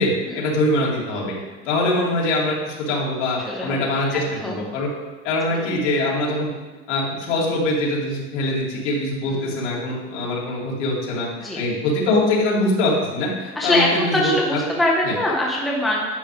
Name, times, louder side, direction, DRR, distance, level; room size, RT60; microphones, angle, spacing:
voice 1, 0.0-1.3 1.6-4.9 5.2-6.5 6.9-11.3 11.5-14.3 15.0-15.1, left 1 dB, 75° left, -4 dB, 3.0 m, -23 dB
voice 2, 3.4-4.6 5.5-5.6 9.2-9.5 11.4-11.6 13.5-16.0, left 1 dB, ahead, -3 dB, 0.6 m, -23 dB
10.0 x 7.3 x 3.5 m, 1.2 s
supercardioid pair, 170°, 35 cm